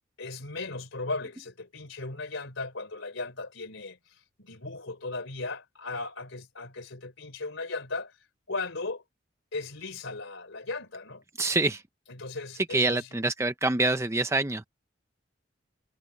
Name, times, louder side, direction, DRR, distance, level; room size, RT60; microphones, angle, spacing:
voice 1, 0.2-9.0 9.5-11.2 12.1-13.2, left 3 dB, 90° left, 3.6 m, -37 dB
voice 2, 11.4-11.8 12.7-14.6, right 2 dB, 15° right, 0.6 m, -26 dB
head